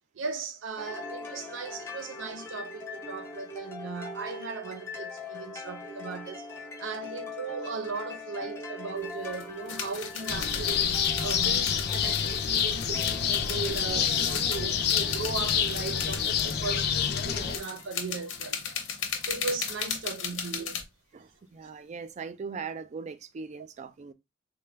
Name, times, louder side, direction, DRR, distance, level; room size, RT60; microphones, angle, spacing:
voice 1, 0.1-6.5 6.8-10.9 11.2-18.8 19.2-20.8, right 4 dB, 80° right, 0.6 m, -37 dB
sound 1, 0.8-18.6, left 3 dB, 15° left, 0.6 m, -43 dB
sound 2, 9.0-9.1 9.2-20.8, left 7 dB, 80° left, 0.8 m, -36 dB
sound 3, 10.3-17.6, left 7 dB, 55° left, 0.5 m, -27 dB
voice 2, 21.1-24.1, right 5 dB, 35° right, 0.3 m, -40 dB
3.8 x 2.1 x 3.3 m
head